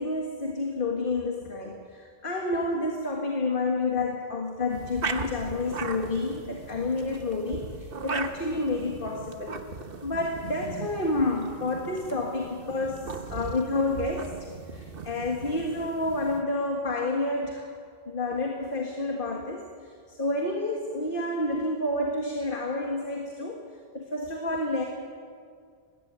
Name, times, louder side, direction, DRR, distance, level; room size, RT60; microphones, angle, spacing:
voice 1, 0.0-9.6 10.0-17.7 18.1-23.6 23.9-24.8, left 2 dB, 55° left, 1 dB, 2.0 m, -29 dB
sound 1, 4.7-16.4, right 4 dB, 65° right, 1.3 m, -38 dB
19.5 x 16.0 x 9.5 m, 2.1 s
omnidirectional pair, 1.0 m